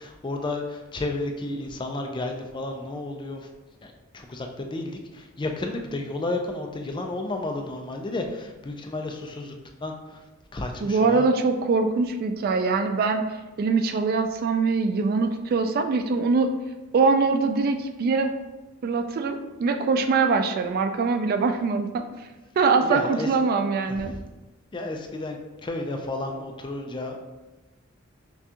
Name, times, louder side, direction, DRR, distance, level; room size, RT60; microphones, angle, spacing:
voice 1, 0.0-3.5 3.8-9.5 9.8-10.2 10.5-11.3 22.8-23.3 23.9-24.2 24.7-27.2, left 2 dB, 25° left, 3 dB, 0.4 m, -32 dB
voice 2, 10.8-13.3 13.6-16.5 16.9-18.3 18.8-22.1 22.6-24.2, right 4 dB, 45° right, 7 dB, 0.3 m, -23 dB
5.9 x 2.3 x 2.8 m, 1.1 s
head